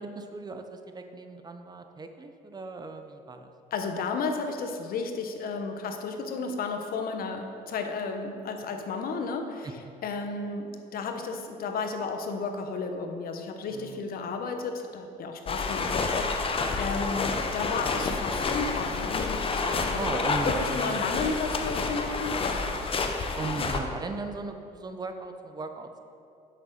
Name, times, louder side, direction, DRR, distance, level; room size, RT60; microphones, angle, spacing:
voice 1, 0.0-3.5 9.6-9.7 13.7-14.1 17.3-17.4 19.9-21.1 23.3-26.0, right 3 dB, 25° right, 6 dB, 0.8 m, -37 dB
voice 2, 3.7-9.7 10.0-22.6, left 4 dB, 60° left, 6 dB, 1.1 m, -33 dB
sound 1, 15.5-23.8, left 4 dB, 35° left, 0.9 m, -29 dB
7.9 x 6.7 x 6.5 m, 2.5 s
cardioid pair, 110°, 17 cm